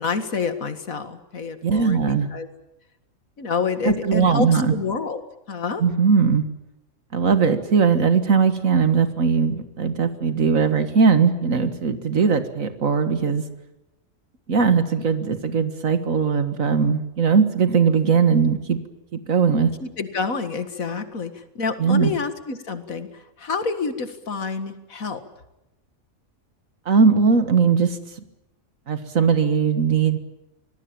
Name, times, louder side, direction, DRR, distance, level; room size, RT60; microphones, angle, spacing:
voice 1, 0.0-2.5 3.4-5.2 5.5-5.8 19.8-25.2, left 5 dB, 80° left, 10 dB, 2.3 m, -28 dB
voice 2, 1.6-2.3 3.8-4.7 5.8-6.4 7.1-13.4 14.5-18.8 19.1-19.7 21.8-22.1 26.9-28.0 28.9-30.2, right 5 dB, 75° right, 10 dB, 2.0 m, -19 dB
25.5 x 20.0 x 8.9 m, 0.92 s
omnidirectional pair, 1.4 m